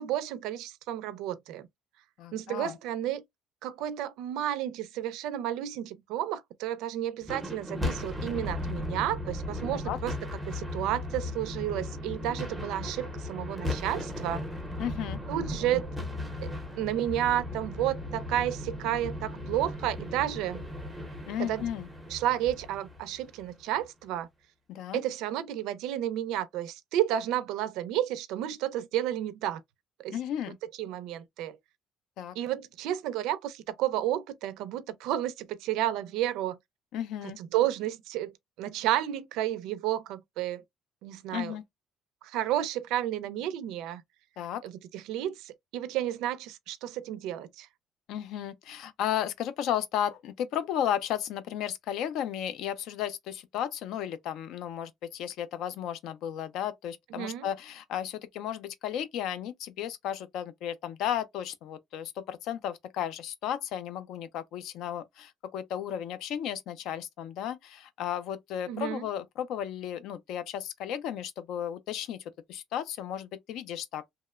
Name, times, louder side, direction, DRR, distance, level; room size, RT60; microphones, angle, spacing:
voice 1, 0.0-1.7 2.3-3.2 3.6-10.1 10.5-14.5 15.3-15.9 16.4-20.6 21.4-21.7 22.1-24.3 24.9-29.6 30.0-30.2 30.8-31.6 32.4-36.6 37.2-38.3 38.6-40.6 41.0-41.5 42.2-44.0 44.6-47.7 57.2-57.5 68.7-69.1, right 12 dB, 75° right, 0.4 m, -31 dB
voice 2, 2.2-2.8 9.7-10.0 14.8-15.2 21.3-21.9 24.7-25.0 30.1-30.6 32.2-32.4 36.9-37.4 41.3-41.6 44.4-44.6 48.1-74.0, left 10 dB, 65° left, 0.4 m, -34 dB
sound 1, 7.2-23.6, left 1 dB, ahead, 0.6 m, -36 dB
2.8 x 2.0 x 2.3 m
cardioid pair, 180°, 0 cm